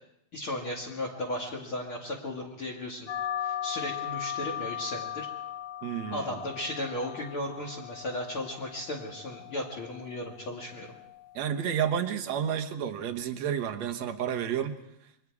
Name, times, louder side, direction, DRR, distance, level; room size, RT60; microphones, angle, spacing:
voice 1, 0.3-3.1 3.4-5.3 6.1-10.9, left 1 dB, 45° left, -2 dB, 2.9 m, -35 dB
sound 1, 3.1-12.1, left 11 dB, 85° left, 2.7 m, -39 dB
voice 2, 5.8-6.3 11.3-14.8, right 9 dB, 60° right, 5 dB, 2.3 m, -30 dB
28.0 x 22.5 x 4.8 m, 0.79 s
omnidirectional pair, 3.6 m